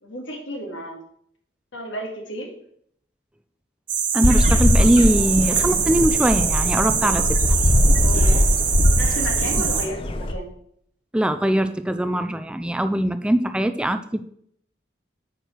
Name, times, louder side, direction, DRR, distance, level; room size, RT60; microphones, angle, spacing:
voice 1, 0.0-1.0 1.7-2.5 8.0-8.4 9.0-10.5, equal, 85° left, 1 dB, 2.5 m, -32 dB
sound 1, 3.9-9.9, right 7 dB, 45° right, 1.1 m, -24 dB
voice 2, 4.1-7.2 11.1-14.2, right 1 dB, 5° right, 10 dB, 0.3 m, -21 dB
sound 2, 4.2-10.3, left 1 dB, 30° left, 0.7 m, -20 dB
8.8 x 4.7 x 6.6 m, 0.68 s
head